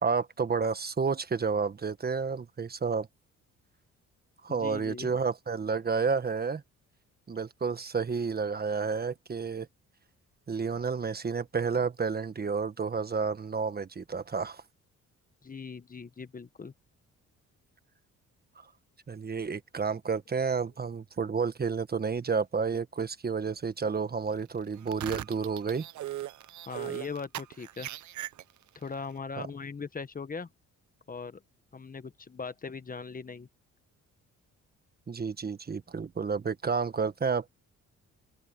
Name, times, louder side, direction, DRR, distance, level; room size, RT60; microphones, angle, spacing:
voice 1, 0.0-3.1 4.4-6.6 7.3-9.7 10.5-14.6 18.6-18.7 19.1-25.9 35.1-37.5, right 5 dB, 30° right, 1.4 m, -30 dB
voice 2, 4.5-5.2 15.4-16.7 26.7-27.9 28.7-30.5 31.1-31.4 31.7-33.5, left 5 dB, 30° left, 1.3 m, -40 dB
sound 1, 24.8-28.8, right 14 dB, 70° right, 0.9 m, -39 dB
cardioid pair, 90°, 30 cm